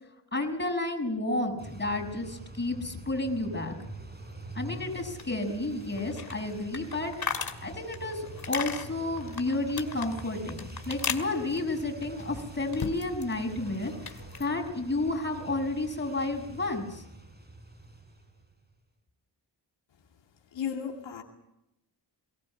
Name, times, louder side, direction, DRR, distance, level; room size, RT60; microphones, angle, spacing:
voice 1, 0.3-3.7 4.5-13.9 14.4-17.0, left 2 dB, 25° left, 1 dB, 6.1 m, -31 dB
sound 1, 1.6-18.6, right 2 dB, 20° right, 5.1 m, -45 dB
sound 2, 4.8-13.3 13.6-14.5, left 6 dB, 55° left, 2.2 m, -38 dB
voice 2, 20.5-21.2, left 7 dB, 85° left, 1 dB, 2.5 m, -34 dB
22.5 x 19.5 x 7.6 m, 0.87 s
wide cardioid pair, 90°, 44 cm